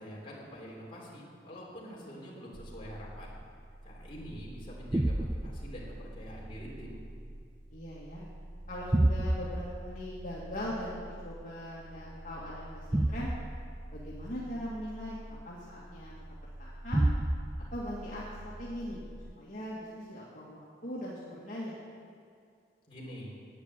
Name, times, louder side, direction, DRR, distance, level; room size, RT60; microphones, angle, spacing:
voice 1, 0.0-3.4 3.8-7.0 22.9-23.4, equal, 30° left, -5 dB, 3.7 m, -45 dB
sound 1, 2.5-19.3, right 1 dB, 15° right, 0.4 m, -35 dB
voice 2, 7.7-8.2 8.7-13.3 13.9-15.2 15.4-16.1 16.6-17.1 17.7-19.0 19.4-21.8, left 1 dB, 45° left, -8 dB, 2.2 m, -40 dB
12.0 x 9.6 x 8.3 m, 2.3 s
head